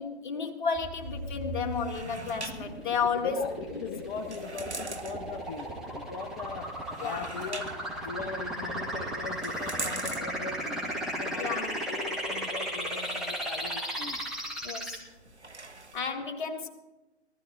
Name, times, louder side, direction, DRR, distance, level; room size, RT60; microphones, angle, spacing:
voice 1, 0.0-3.4 3.7-3.8 7.0-7.2 11.4-11.7 14.6-15.0 15.9-16.7, left 5 dB, 45° left, 4 dB, 1.8 m, -32 dB
sound 1, 0.8-15.0, equal, ahead, 2.1 m, -36 dB
sound 2, 1.0-16.0, right 2 dB, 85° right, 1.5 m, -46 dB
voice 2, 3.2-6.7 7.0-7.8 8.0-10.9 11.2-14.2, left 4 dB, 20° left, 2 dB, 0.8 m, -40 dB
18.0 x 14.0 x 4.0 m, 1.1 s
figure-of-eight pair, 125°, 33 cm